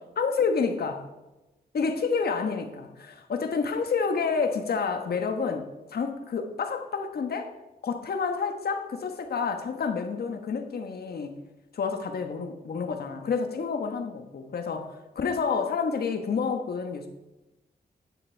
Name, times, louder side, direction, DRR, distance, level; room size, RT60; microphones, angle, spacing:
voice 1, 0.2-1.1 1.7-7.5 7.8-11.4 11.7-17.1, left 5 dB, 70° left, 6 dB, 1.3 m, -29 dB
10.5 x 9.2 x 4.6 m, 1.0 s
wide cardioid pair, 110°, 17 cm